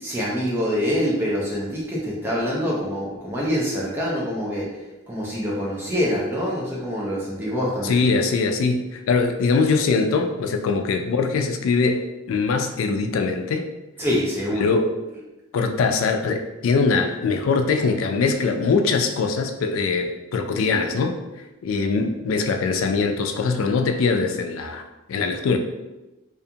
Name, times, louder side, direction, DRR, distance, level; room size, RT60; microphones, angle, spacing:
voice 1, 0.0-4.7 5.1-8.0 14.0-14.7, equal, 10° right, -6 dB, 0.5 m, -25 dB
voice 2, 7.8-13.7 14.6-14.9 15.5-21.2 21.6-24.8 25.1-25.6, left 4 dB, 75° left, 5 dB, 0.3 m, -22 dB
2.5 x 2.3 x 2.7 m, 1.0 s
head